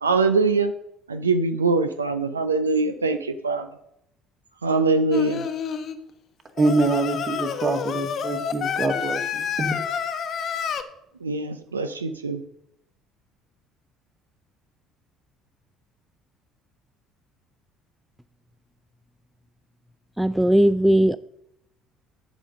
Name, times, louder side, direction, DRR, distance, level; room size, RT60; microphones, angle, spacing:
voice 1, 0.0-0.7 1.1-3.7 4.6-5.5 11.2-12.4, right 3 dB, 85° right, 9 dB, 0.5 m, -23 dB
Singing, 5.1-5.9 6.6-10.8, left 7 dB, 50° left, 0.9 m, -29 dB
voice 2, 6.6-9.7, right 2 dB, 40° right, 5 dB, 1.9 m, -25 dB
voice 3, 20.2-21.2, right 1 dB, 5° right, 15 dB, 0.3 m, -18 dB
10.5 x 5.2 x 6.4 m, 0.78 s
figure-of-eight pair, 55°, 0 cm